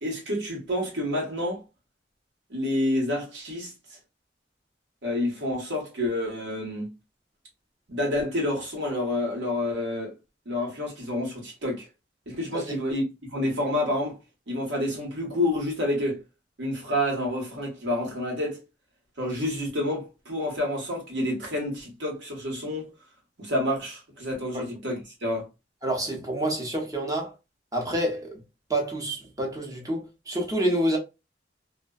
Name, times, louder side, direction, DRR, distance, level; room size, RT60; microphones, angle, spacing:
voice 1, 0.0-1.6 2.5-3.7 5.0-6.9 7.9-10.1 10.4-11.9 12.3-13.0 13.3-14.2 14.5-16.2 16.6-18.6 19.2-22.9 23.4-25.5, left 1 dB, 90° right, 1.2 m, -28 dB
voice 2, 25.8-27.3 27.7-28.4 28.7-31.0, right 1 dB, 20° right, 0.8 m, -28 dB
2.5 x 2.2 x 2.2 m
head